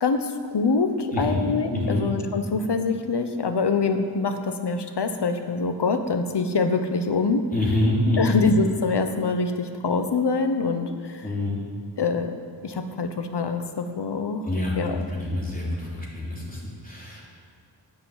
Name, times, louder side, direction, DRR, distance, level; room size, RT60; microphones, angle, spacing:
voice 1, 0.0-7.4 8.2-11.3 12.0-12.3 12.6-14.4 14.8-15.1, left 4 dB, 65° left, 7 dB, 1.0 m, -25 dB
voice 2, 1.1-2.1 7.5-8.4 11.2-11.7 14.4-17.4, left 1 dB, 20° left, -5 dB, 3.2 m, -26 dB
10.5 x 6.8 x 8.0 m, 2.2 s
wide cardioid pair, 85°, 43 cm